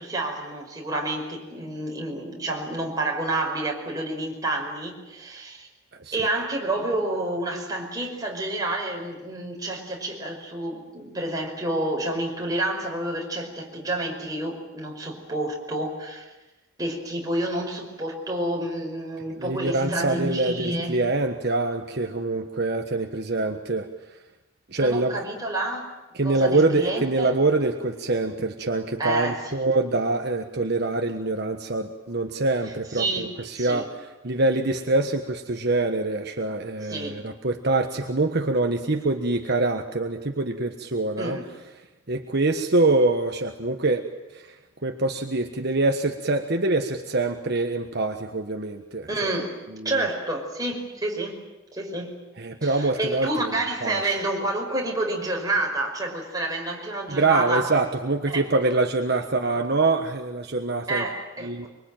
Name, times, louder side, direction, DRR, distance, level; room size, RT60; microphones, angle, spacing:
voice 1, 0.0-5.7 6.1-16.3 16.8-21.0 24.8-25.9 26.2-27.3 29.0-29.6 32.9-33.8 36.8-37.2 41.2-41.5 49.1-49.5 49.8-51.4 51.7-52.1 52.6-57.7 58.3-58.5 59.2-59.3 59.6-59.7 60.9-61.7, right 2 dB, 20° right, 0 dB, 5.3 m, -29 dB
voice 2, 19.3-23.9 24.7-25.2 26.1-41.4 42.1-44.1 44.3-44.6 44.8-49.1 49.7-50.0 52.4-53.5 53.8-54.1 57.1-61.0 61.4-61.7, right 2 dB, 55° right, 4 dB, 1.4 m, -25 dB
24.5 x 24.0 x 9.1 m, 1.0 s
head